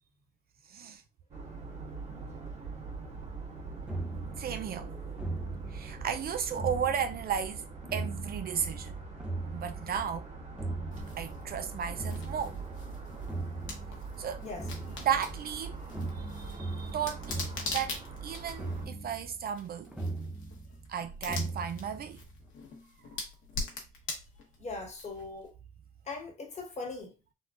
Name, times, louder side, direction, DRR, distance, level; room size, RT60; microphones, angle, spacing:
voice 1, 0.7-1.0 4.4-4.9 5.7-8.9 9.5-10.3 11.2-12.6 14.2-14.4 15.0-19.9 20.9-22.2, right 8 dB, 50° right, 0.4 m, -34 dB
sound 1, 1.3-18.8, right 4 dB, 35° right, 1.7 m, -43 dB
sound 2, 3.2-22.5, right 2 dB, 5° right, 0.6 m, -40 dB
sound 3, 10.9-25.5, left 3 dB, 70° left, 1.0 m, -44 dB
voice 2, 14.4-14.7 24.6-25.5 26.0-27.1, left 3 dB, 35° left, 1.2 m, -40 dB
3.6 x 2.2 x 2.4 m
cardioid pair, 100°, 21 cm